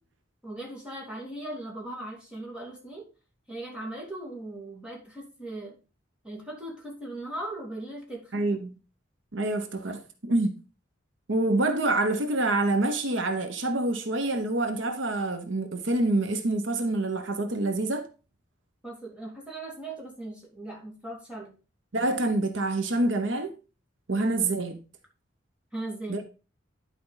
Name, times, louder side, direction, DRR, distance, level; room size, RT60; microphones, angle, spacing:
voice 1, 0.4-3.1 3.5-5.7 6.2-8.3 18.8-21.5 25.7-26.2, right 1 dB, 5° right, 2.5 m, -38 dB
voice 2, 8.3-8.7 9.3-10.6 11.3-18.1 21.9-23.5 24.1-24.8 26.1-26.2, right 2 dB, 75° right, 1.0 m, -26 dB
11.0 x 4.6 x 4.0 m
head